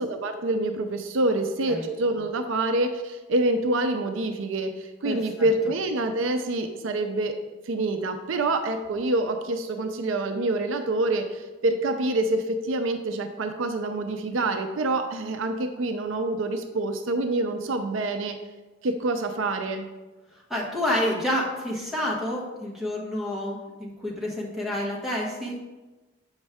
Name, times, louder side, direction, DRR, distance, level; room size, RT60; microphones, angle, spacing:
voice 1, 0.0-7.3 7.7-18.4 18.8-19.9, right 2 dB, 65° right, 6 dB, 0.5 m, -26 dB
voice 2, 1.4-1.9 5.0-5.5 20.5-25.6, left 1 dB, ahead, -4 dB, 1.2 m, -29 dB
7.1 x 5.2 x 3.5 m, 1.2 s
head